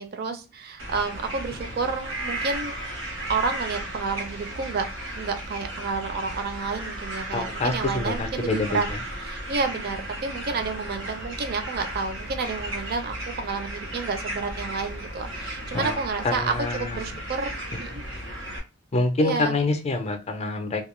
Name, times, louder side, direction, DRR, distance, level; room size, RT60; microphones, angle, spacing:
voice 1, 0.0-2.7 3.3-4.8 5.2-8.9 9.2-18.0 19.2-19.6, right 4 dB, 50° right, 0.4 m, -30 dB
sound 1, 0.8-18.6, right 1 dB, 85° right, 0.9 m, -35 dB
voice 2, 7.3-9.0 15.7-17.1 18.9-20.8, left 2 dB, 30° left, 0.5 m, -26 dB
2.3 x 2.1 x 3.0 m
head